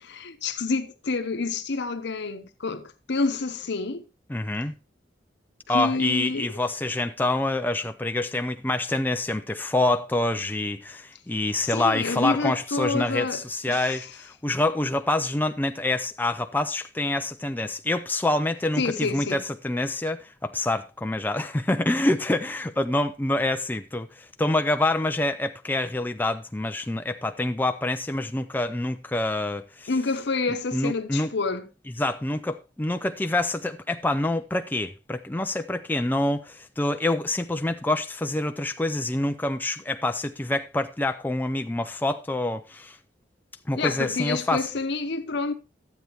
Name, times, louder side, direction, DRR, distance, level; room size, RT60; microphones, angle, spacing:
voice 1, 0.0-4.0 5.7-6.5 11.5-14.0 18.8-19.4 29.9-31.7 43.7-45.5, left 3 dB, 65° left, 0.9 m, -28 dB
voice 2, 4.3-4.7 5.7-29.9 30.7-31.3 32.0-43.0 43.7-44.6, left 2 dB, 10° left, 0.4 m, -26 dB
12.5 x 8.2 x 3.0 m
head